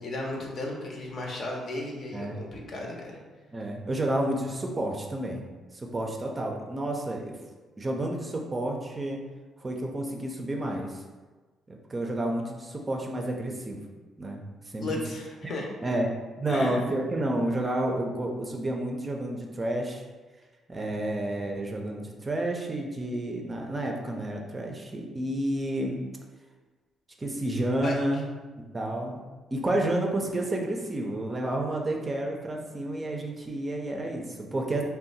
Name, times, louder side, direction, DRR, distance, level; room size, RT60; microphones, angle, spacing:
voice 1, 0.0-3.2 14.8-15.7 16.5-16.9 27.8-28.0, left 2 dB, 55° left, -1 dB, 0.7 m, -35 dB
voice 2, 3.5-5.5 5.7-7.3 7.8-9.2 9.6-11.0 11.7-13.8 14.2-14.9 15.8-16.1 16.4-20.0 20.7-26.0 27.2-28.3 28.6-29.2 29.5-34.8, right 1 dB, 25° right, 1 dB, 0.4 m, -30 dB
2.6 x 2.1 x 4.0 m, 1.3 s
cardioid pair, 90°, 0 cm